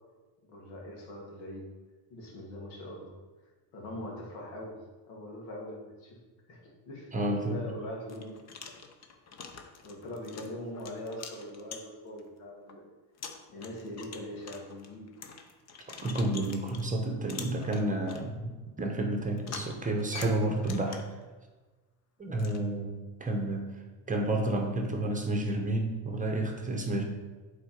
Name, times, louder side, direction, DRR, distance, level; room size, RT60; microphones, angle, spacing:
voice 1, 0.5-1.7 2.1-3.1 3.7-4.8 5.1-6.2 6.5-6.6 6.9-8.4 9.8-12.8 13.5-15.2, left 1 dB, 85° left, -1 dB, 2.3 m, -42 dB
voice 2, 7.1-7.6 16.0-21.0 22.2-22.9 23.2-23.7 24.1-27.0, right 1 dB, 15° right, 2 dB, 0.9 m, -30 dB
sound 1, 7.4-7.5 8.1-12.2 12.7-12.8 13.2-16.9 17.3-18.2 19.4-21.2 22.4-22.6, left 5 dB, 35° left, 0.8 m, -45 dB
7.9 x 4.2 x 5.2 m, 1.3 s
cardioid pair, 130°, 47 cm